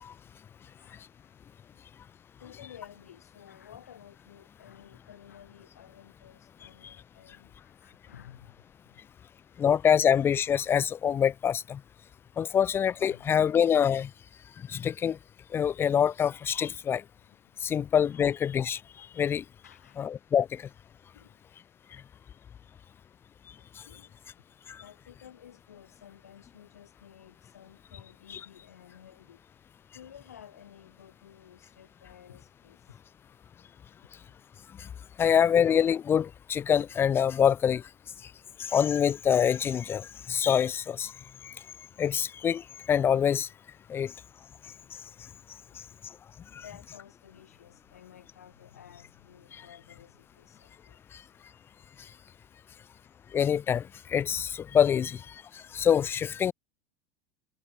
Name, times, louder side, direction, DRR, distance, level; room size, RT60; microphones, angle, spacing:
voice 1, 0.7-1.4 1.7-1.9 2.4-9.1 9.4-9.6 12.2-12.6 13.1-13.3 16.8-17.7 18.1-18.2 19.6-20.1 21.1-21.4 22.6-22.9 23.6-24.2 24.8-33.0 34.3-34.4 35.3-35.4 41.6-41.7 44.6-44.9 45.7-45.9 46.4-51.3 52.5-53.0 55.6-55.9, left 9 dB, 90° left, 3.8 m, -54 dB
voice 2, 9.6-11.8 12.4-14.1 14.7-15.2 15.5-17.0 17.6-19.4 20.0-20.7 24.7-24.8 28.3-28.4 34.8-34.9 35.2-37.8 38.6-41.1 41.4-41.5 42.0-43.5 43.9-44.1 46.5-46.6 49.5-49.6 53.3-53.8 54.1-55.2 55.5-56.5, left 8 dB, 30° left, 0.5 m, -25 dB
hypercardioid pair, 90°, 8 cm